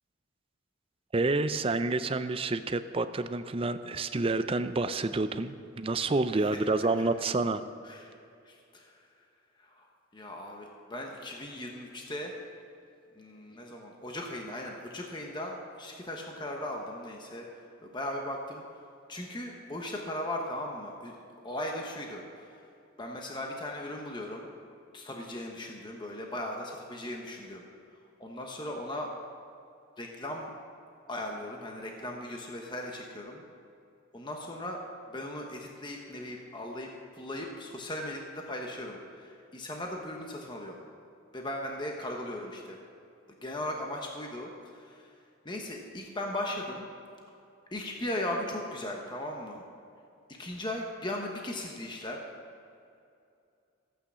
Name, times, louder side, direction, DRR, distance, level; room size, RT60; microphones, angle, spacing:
voice 1, 1.1-7.6, right 3 dB, 25° right, 11 dB, 0.4 m, -29 dB
voice 2, 8.4-9.0 9.6-9.9 10.1-12.3 13.2-17.5 17.8-18.6 19.1-21.1 21.4-22.6 23.0-24.5 24.9-27.6 28.2-29.1 30.0-30.5 31.1-33.4 34.1-34.8 35.1-40.8 41.3-42.8 43.3-45.1 45.4-46.9 47.7-49.6 50.4-52.2, left 1 dB, 20° left, 1 dB, 1.0 m, -38 dB
15.0 x 8.6 x 6.2 m, 2.5 s
head